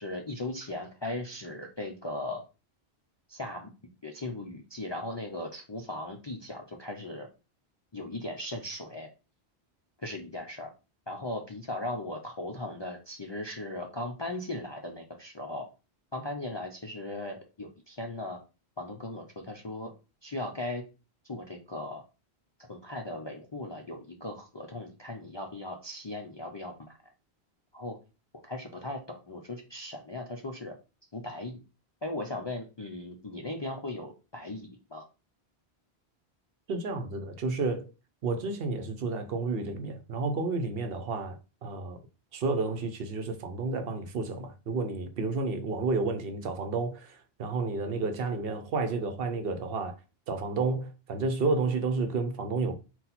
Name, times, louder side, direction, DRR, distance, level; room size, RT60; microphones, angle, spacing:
voice 1, 0.0-2.4 3.3-3.7 4.0-7.3 7.9-9.1 10.0-10.7 11.1-15.7 16.1-18.4 18.8-19.9 20.2-20.8 21.3-22.0 22.7-27.0 27.7-28.0 28.4-30.8 31.1-31.6 32.0-35.1, left 2 dB, 40° left, 0.4 m, -38 dB
voice 2, 36.7-37.9 38.2-42.0 42.3-50.0 50.3-52.7, right 3 dB, 65° right, 0.8 m, -31 dB
4.1 x 2.3 x 4.0 m
omnidirectional pair, 1.1 m